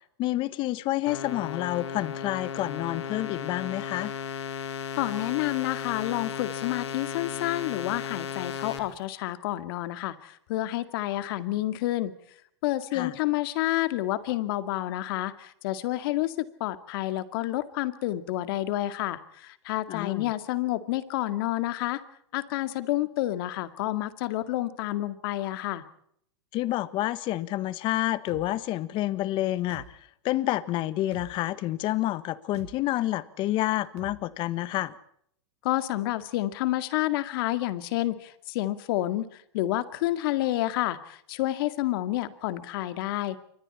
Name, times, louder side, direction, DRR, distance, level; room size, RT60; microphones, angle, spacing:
voice 1, 0.2-4.1 12.9-13.2 19.9-20.3 26.5-35.0, left 15 dB, 35° left, 16 dB, 1.4 m, -29 dB
sound 1, 1.1-8.8, left 7 dB, 80° left, 4.5 m, -35 dB
voice 2, 5.0-12.1 12.6-22.0 22.3-25.8 35.6-39.2 39.5-43.4, left 16 dB, 55° left, 11 dB, 2.1 m, -29 dB
sound 2, 28.3-28.5 29.7-29.9 31.1-31.3 32.5-32.7 34.0-34.2, right 10 dB, 75° right, 3.1 m, -44 dB
28.0 x 24.5 x 4.4 m, 0.67 s
supercardioid pair, 140°, 14 cm